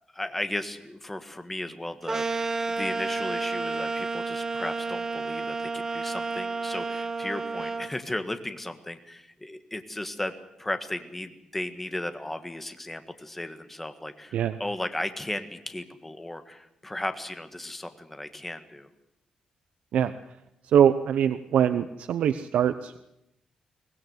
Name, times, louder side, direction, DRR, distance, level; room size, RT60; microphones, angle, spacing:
voice 1, 0.1-10.3 10.6-18.9, left 1 dB, 10° left, 8 dB, 1.6 m, -35 dB
sound 1, 2.1-7.9, right 4 dB, 25° right, 1.2 m, -31 dB
voice 2, 20.6-23.1, right 9 dB, 80° right, 11 dB, 0.8 m, -23 dB
23.5 x 18.5 x 8.0 m, 0.84 s
wide cardioid pair, 165°, 2 cm